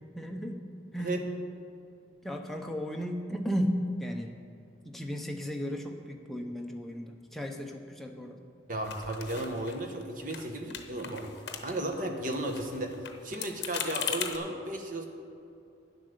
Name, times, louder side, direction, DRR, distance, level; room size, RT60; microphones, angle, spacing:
voice 1, 0.1-0.6 0.9-1.2 2.2-4.3 4.8-8.4, equal, ahead, 2 dB, 0.7 m, -34 dB
voice 2, 8.7-11.3 11.6-13.0 13.2-15.1, right 1 dB, 45° right, 4 dB, 1.1 m, -34 dB
sound 1, 8.8-10.0 10.3-10.4 10.7-12.0 12.3-14.4, left 8 dB, 65° left, 0.9 m, -38 dB
9.7 x 7.8 x 6.6 m, 2.6 s
head